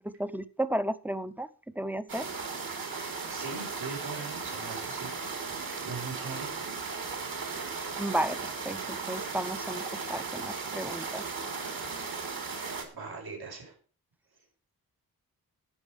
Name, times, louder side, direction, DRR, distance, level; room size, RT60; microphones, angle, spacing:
voice 1, 0.0-1.5 1.8-2.3 8.0-8.4 8.6-11.2, right 1 dB, 5° right, 13 dB, 0.6 m, -33 dB
sound 1, 2.1-12.9, right 4 dB, 65° right, 3.2 m, -36 dB
voice 2, 3.3-6.7 12.9-13.8, right 4 dB, 80° right, -1 dB, 5.9 m, -41 dB
12.5 x 9.0 x 5.0 m, 0.40 s
wide cardioid pair, 145°, 37 cm